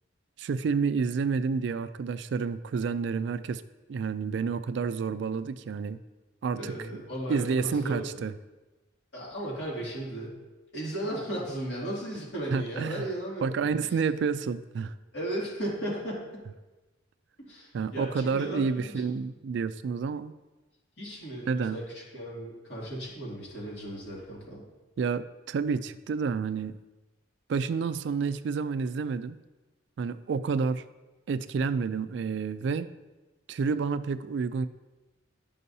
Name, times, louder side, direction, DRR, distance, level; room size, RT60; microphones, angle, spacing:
voice 1, 0.4-3.6 3.9-6.0 6.4-6.7 7.3-8.3 12.5-13.0 13.4-14.9 17.7-20.3 21.5-21.8 25.0-26.8 27.5-29.4 30.0-30.8 31.3-32.9 33.5-34.7, right 5 dB, 65° right, 13 dB, 0.3 m, -29 dB
voice 2, 6.5-8.2 9.1-10.3 10.7-14.0 15.1-16.2 17.4-19.2 21.0-24.6, right 1 dB, 60° left, -5 dB, 2.5 m, -36 dB
11.0 x 5.4 x 2.7 m, 1.1 s
head